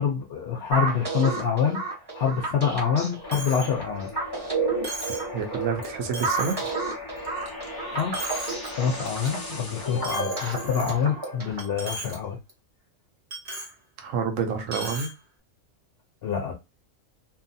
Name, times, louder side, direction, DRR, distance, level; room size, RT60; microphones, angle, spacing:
voice 1, 0.0-1.8 2.1-4.1 7.9-8.2 8.7-12.4 16.2-16.5, left 7 dB, 60° left, 0.7 m, -26 dB
sound 1, 0.7-11.7, right 3 dB, 20° right, 0.9 m, -31 dB
sound 2, 3.2-11.9, left 3 dB, 30° left, 0.4 m, -38 dB
Coin (dropping), 3.3-3.7 4.1-4.2 4.8-5.3 5.8-5.9 6.1-6.7 7.2-7.7 8.0-8.7 9.1-9.3 10.0-11.2 11.6-12.2 12.5-12.6 13.3-13.7 14.7-15.1, right 2 dB, 50° right, 1.0 m, -36 dB
voice 2, 5.3-6.6 14.0-15.1, right 6 dB, 70° right, 1.0 m, -28 dB
2.7 x 2.4 x 2.6 m
omnidirectional pair, 1.4 m